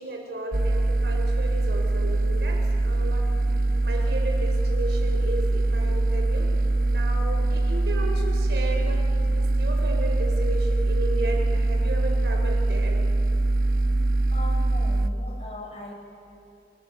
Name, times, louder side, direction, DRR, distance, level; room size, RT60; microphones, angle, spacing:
voice 1, 0.0-3.3 3.8-13.0, right 1 dB, 75° right, 2 dB, 5.2 m, -34 dB
sound 1, 0.5-15.1, right 2 dB, 50° right, 0.8 m, -23 dB
voice 2, 14.3-15.9, left 1 dB, 35° left, 2 dB, 4.7 m, -39 dB
30.0 x 24.5 x 7.0 m, 2.6 s
head